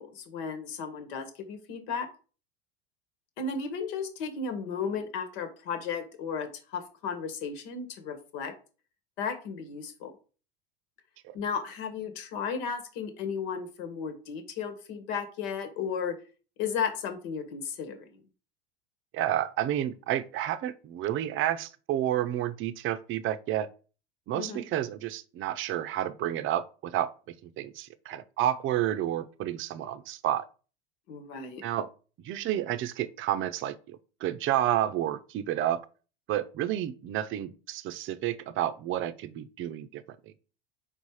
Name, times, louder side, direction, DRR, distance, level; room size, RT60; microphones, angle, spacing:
voice 1, 0.0-2.1 3.4-8.5 9.2-10.1 11.3-16.2 16.6-18.2 24.3-24.7 31.1-31.6, left 6 dB, 70° left, 1.6 m, -34 dB
voice 2, 19.1-23.7 24.3-27.1 27.6-30.4 31.6-31.9 32.2-35.8 36.3-40.0, right 12 dB, 40° right, 0.6 m, -30 dB
5.4 x 4.1 x 4.8 m
supercardioid pair, 100°, 30 cm